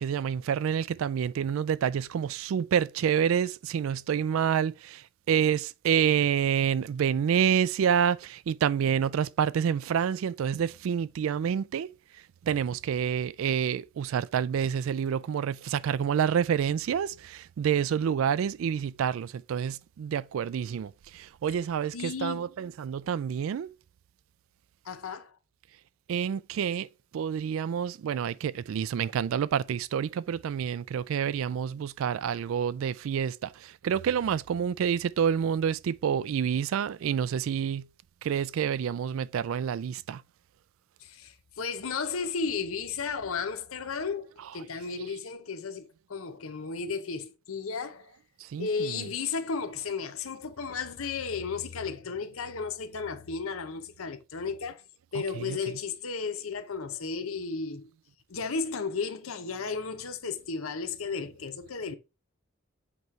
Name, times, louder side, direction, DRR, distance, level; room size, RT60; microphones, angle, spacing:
voice 1, 0.0-11.9 12.4-23.7 26.1-37.9 38.2-40.2 48.4-49.1 55.3-55.6, right 8 dB, 75° right, 0.3 m, -28 dB
voice 2, 21.9-22.4 24.8-25.4 41.0-48.1 48.6-54.8 55.1-57.9 58.3-61.9, left 5 dB, 80° left, 0.8 m, -34 dB
7.9 x 3.2 x 4.6 m
head